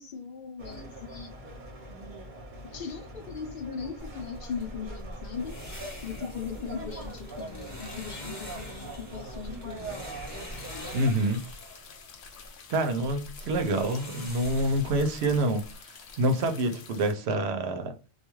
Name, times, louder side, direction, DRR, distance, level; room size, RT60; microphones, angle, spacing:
voice 1, 0.0-1.3 2.7-5.6 6.0-10.0, left 6 dB, 60° left, 0.7 m, -39 dB
sound 1, 0.6-11.1, right 1 dB, 50° right, 0.8 m, -42 dB
sound 2, 4.0-15.7, equal, 20° left, 0.8 m, -44 dB
sound 3, 10.5-17.1, left 6 dB, 85° left, 0.9 m, -49 dB
voice 2, 10.9-11.4 12.7-17.9, right 1 dB, 80° right, 0.8 m, -27 dB
2.3 x 2.3 x 3.0 m
omnidirectional pair, 1.1 m